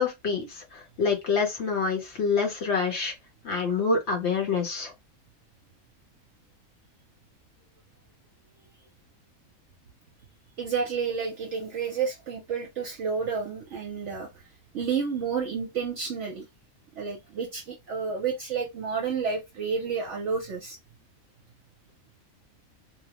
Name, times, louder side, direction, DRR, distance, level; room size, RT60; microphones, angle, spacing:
voice 1, 0.0-3.1 3.4-4.9, left 5 dB, 55° left, 1.0 m, -27 dB
voice 2, 10.6-14.3 14.7-16.4 17.0-20.8, right 5 dB, 65° right, 0.9 m, -30 dB
2.9 x 2.0 x 2.8 m
omnidirectional pair, 1.5 m